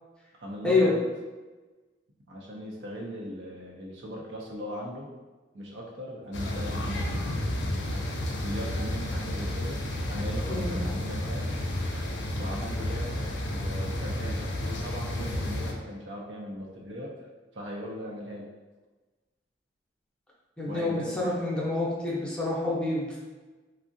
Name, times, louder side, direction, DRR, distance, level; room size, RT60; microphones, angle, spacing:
voice 1, 0.4-1.0 2.3-5.1 5.5-8.1 8.4-9.8 10.1-11.6 12.3-17.1 17.5-18.5 20.6-21.4, equal, 85° right, -2 dB, 0.6 m, -39 dB
sound 1, 6.3-15.7, left 1 dB, 70° left, 0.4 m, -31 dB
voice 2, 20.6-23.2, left 2 dB, 5° left, -6 dB, 0.6 m, -27 dB
3.4 x 2.0 x 2.6 m, 1.2 s
head